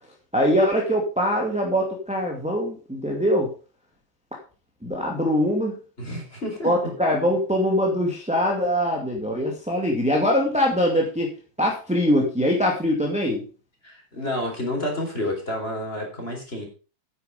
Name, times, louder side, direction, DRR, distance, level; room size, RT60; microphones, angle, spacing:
voice 1, 0.3-3.5 4.3-4.4 4.8-5.8 6.6-11.3 11.6-13.5, equal, 5° right, -1 dB, 2.1 m, -22 dB
voice 2, 6.0-6.7 13.8-16.7, left 1 dB, 25° left, 1 dB, 4.4 m, -29 dB
9.8 x 9.6 x 5.1 m, 0.34 s
omnidirectional pair, 2.3 m